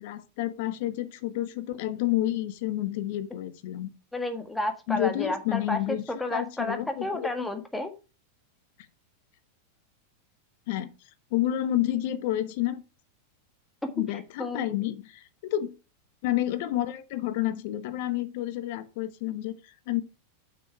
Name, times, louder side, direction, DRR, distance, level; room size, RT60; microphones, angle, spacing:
voice 1, 0.0-3.9 4.9-6.0 6.3-7.3 10.7-10.9 11.3-12.8 14.0-15.7 16.2-20.0, left 13 dB, 50° left, 1.0 m, -29 dB
voice 2, 4.1-7.9 14.4-14.6, left 1 dB, 5° left, 1.6 m, -31 dB
7.2 x 6.2 x 4.7 m
figure-of-eight pair, 90°, 0 cm